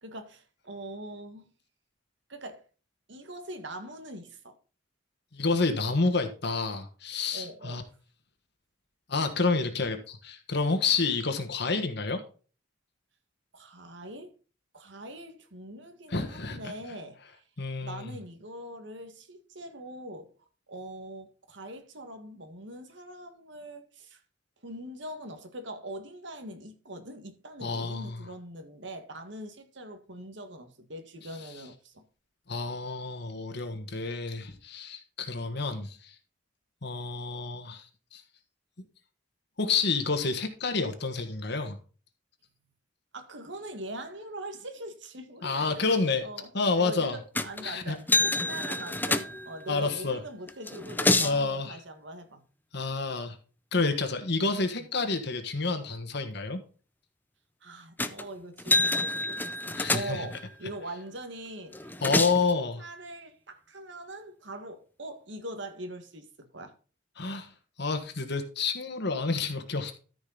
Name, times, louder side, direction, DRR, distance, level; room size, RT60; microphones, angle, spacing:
voice 1, 0.0-1.5 2.3-2.7 3.1-4.5 7.3-7.8 13.5-14.4 14.7-17.4 17.8-24.2 24.6-32.0 43.1-52.4 57.6-62.2 62.8-66.7, right 1 dB, 65° right, 1.7 m, -42 dB
voice 2, 5.3-7.8 9.1-12.2 16.1-16.7 17.6-18.1 27.6-28.2 32.5-36.1 36.8-37.8 38.1-38.2 39.6-41.8 45.4-46.3 46.5-47.2 47.6-48.0 49.7-50.2 51.1-51.8 52.7-53.4 53.7-56.6 59.7-60.3 62.0-62.8 67.2-67.5 67.8-69.9, left 4 dB, 60° left, 1.4 m, -29 dB
sound 1, 47.3-47.7 48.1-49.7 50.5-51.4 58.0-58.2 58.6-60.4 61.7-62.5, left 2 dB, 10° left, 0.6 m, -27 dB
13.5 x 5.2 x 3.9 m
head